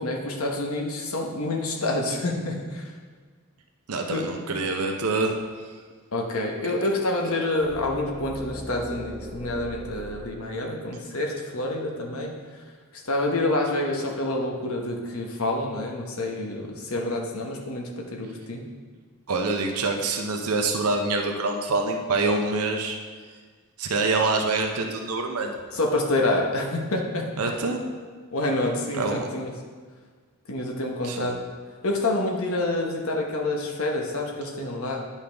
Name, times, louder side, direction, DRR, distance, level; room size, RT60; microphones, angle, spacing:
voice 1, 0.0-2.9 4.1-4.3 6.1-12.6 12.9-18.6 25.7-27.5 28.3-29.5 30.5-31.4 31.8-35.0, left 2 dB, 70° left, 0 dB, 1.1 m, -27 dB
voice 2, 3.9-5.3 6.6-6.7 19.3-23.0 23.8-25.5 27.4-27.8 28.9-29.3 31.0-31.4, right 3 dB, 85° right, 3 dB, 0.7 m, -26 dB
sound 1, 7.6-11.5, right 1 dB, 5° right, 0.7 m, -40 dB
10.5 x 5.6 x 3.5 m, 1.6 s
head